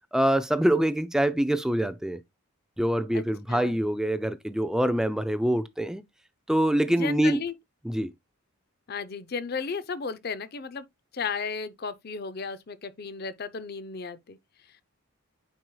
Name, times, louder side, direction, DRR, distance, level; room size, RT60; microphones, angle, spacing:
voice 1, 0.1-2.2 2.8-6.0 6.5-7.4 7.9-8.1, right 1 dB, 5° right, 0.3 m, -25 dB
voice 2, 6.9-7.5 8.9-10.8 11.1-14.4, left 5 dB, 45° left, 0.6 m, -34 dB
8.9 x 4.7 x 2.2 m
head